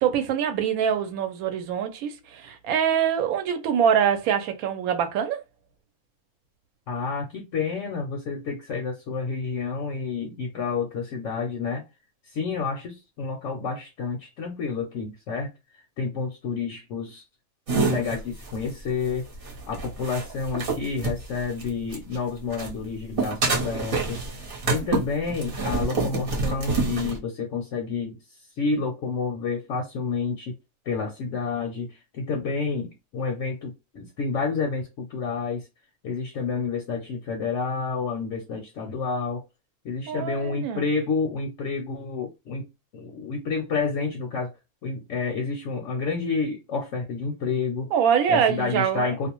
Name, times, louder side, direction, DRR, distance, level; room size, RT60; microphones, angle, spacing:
voice 1, 0.0-5.4 24.7-24.9 40.1-40.9 47.9-49.1, right 8 dB, 75° right, 1.0 m, -24 dB
voice 2, 6.9-11.8 12.3-15.5 16.0-17.2 17.9-19.3 19.7-24.2 24.7-28.2 28.6-30.5 30.9-35.7 36.0-39.4 39.8-42.7 42.9-44.5 44.8-47.9 48.3-49.3, left 4 dB, 70° left, 0.8 m, -29 dB
sound 1, 17.7-22.2 22.5-27.2, right 3 dB, 45° right, 0.9 m, -28 dB
2.5 x 2.1 x 2.9 m
omnidirectional pair, 1.5 m